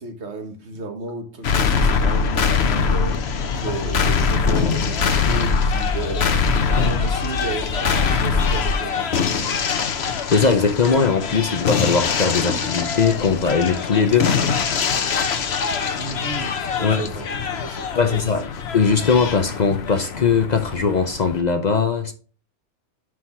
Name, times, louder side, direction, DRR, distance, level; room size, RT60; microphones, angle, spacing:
voice 1, 0.0-3.2 3.5-9.5 16.0-18.4, right 3 dB, 65° right, 1.6 m, -33 dB
sound 1, 1.4-21.4, left 5 dB, 65° left, 1.1 m, -23 dB
voice 2, 10.3-14.3 16.8-17.0 18.0-18.5 18.7-22.1, left 5 dB, 45° left, 0.7 m, -20 dB
5.8 x 4.8 x 5.6 m
omnidirectional pair, 1.2 m